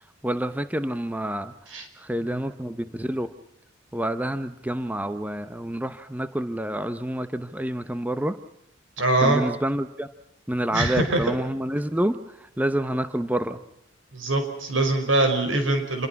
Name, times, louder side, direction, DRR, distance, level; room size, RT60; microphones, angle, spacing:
voice 1, 0.2-3.3 3.9-8.4 9.2-10.1 10.5-12.2 12.6-13.6, right 1 dB, 10° right, 10 dB, 0.8 m, -28 dB
voice 2, 9.0-9.4 10.7-11.2 14.1-16.1, right 2 dB, 85° right, 6 dB, 5.7 m, -23 dB
27.5 x 22.5 x 5.9 m, 0.80 s
head